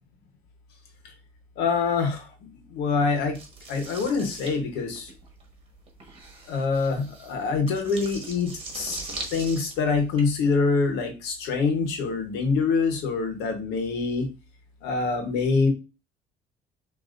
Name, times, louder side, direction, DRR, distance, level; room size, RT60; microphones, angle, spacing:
voice 1, 1.6-3.4 3.7-5.1 6.5-9.0 9.3-14.3 14.8-15.7, left 4 dB, 90° left, 5 dB, 1.2 m, -25 dB
sound 1, 3.3-10.2, right 3 dB, 35° right, 1.4 m, -40 dB
6.3 x 2.8 x 2.6 m, 0.29 s
cardioid pair, 110°, 17 cm